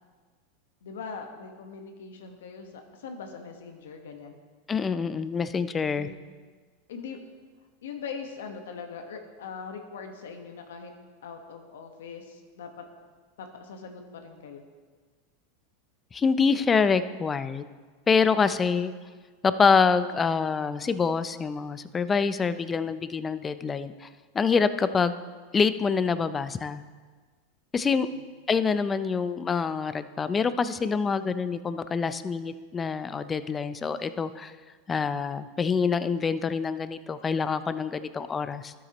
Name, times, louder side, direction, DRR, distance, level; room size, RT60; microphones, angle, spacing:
voice 1, 0.8-4.4 5.9-6.2 6.9-7.2 7.8-10.9 11.2-12.8 13.4-14.6 28.1-28.2, left 5 dB, 85° left, 4 dB, 1.2 m, -41 dB
voice 2, 4.7-6.1 16.1-17.7 18.1-18.9 19.4-24.1 24.3-25.1 25.5-26.8 27.7-28.1 28.5-34.5 34.9-38.7, left 5 dB, 20° left, 13 dB, 0.4 m, -26 dB
12.0 x 8.4 x 3.0 m, 1.5 s
hypercardioid pair, 115°, 0 cm